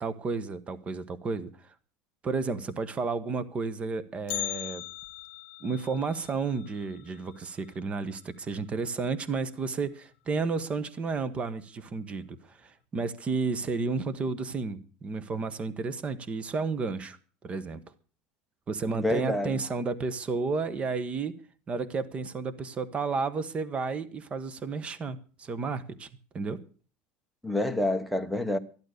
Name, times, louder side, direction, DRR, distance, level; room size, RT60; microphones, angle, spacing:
voice 1, 0.0-1.5 2.2-4.8 5.6-17.2 17.4-17.8 18.7-21.4 21.7-26.1 26.3-26.6, right 4 dB, 20° right, 1.1 m, -32 dB
Bell, 4.3-8.4 8.7-8.8 9.2-9.3 10.1-10.2 11.0-11.3 11.6-11.7, left 25 dB, 70° left, 0.8 m, -40 dB
voice 2, 18.9-19.6 27.4-28.6, left 1 dB, ahead, 1.1 m, -28 dB
13.5 x 11.5 x 6.5 m
supercardioid pair, 150°, 5 cm